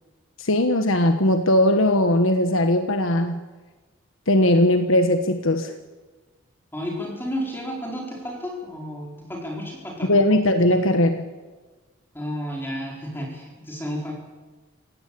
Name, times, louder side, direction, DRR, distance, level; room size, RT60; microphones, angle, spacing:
voice 1, 0.4-3.4 4.3-5.7 10.1-11.3, left 1 dB, 75° left, 7 dB, 1.4 m, -19 dB
voice 2, 6.7-10.1 12.1-14.1, equal, 10° left, -1 dB, 4.4 m, -32 dB
27.0 x 16.5 x 8.7 m, 1.3 s
head